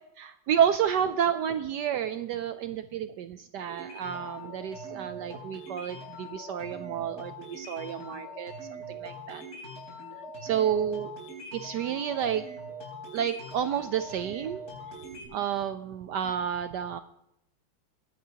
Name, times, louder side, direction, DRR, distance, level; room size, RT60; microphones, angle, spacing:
voice 1, 0.2-8.5 8.9-9.4 10.4-11.1 11.5-12.4 13.1-14.6 15.3-17.0, right 9 dB, 75° right, 10 dB, 1.0 m, -30 dB
sound 1, 3.7-15.3, right 1 dB, 45° left, 4.7 m, -42 dB
22.0 x 9.5 x 2.9 m, 0.80 s
omnidirectional pair, 2.3 m